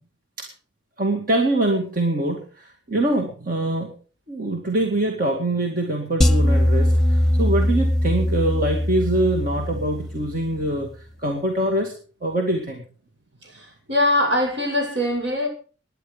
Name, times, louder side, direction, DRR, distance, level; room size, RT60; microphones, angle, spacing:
voice 1, 1.0-3.9 4.3-11.9 12.2-12.8, right 1 dB, 50° right, 2.2 m, -24 dB
sound 1, 6.2-10.5, left 1 dB, ahead, 1.4 m, -21 dB
voice 2, 13.4-15.5, left 1 dB, 70° right, 7.3 m, -22 dB
18.5 x 10.5 x 5.1 m
head